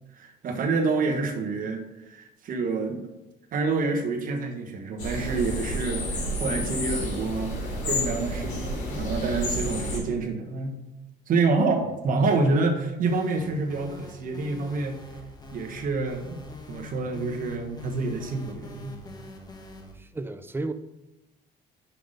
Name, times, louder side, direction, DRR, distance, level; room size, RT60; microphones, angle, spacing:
voice 1, 0.1-3.1 3.5-7.6 7.8-10.8 11.3-15.0 15.5-19.0, right 3 dB, 55° right, 1.3 m, -27 dB
sound 1, 5.0-10.0, left 1 dB, 85° left, 2.8 m, -30 dB
sound 2, 13.1-19.9, left 2 dB, 25° left, 1.2 m, -44 dB
voice 2, 20.0-20.7, right 2 dB, 15° right, 0.5 m, -33 dB
5.8 x 5.6 x 5.1 m
cardioid pair, 110°, 17 cm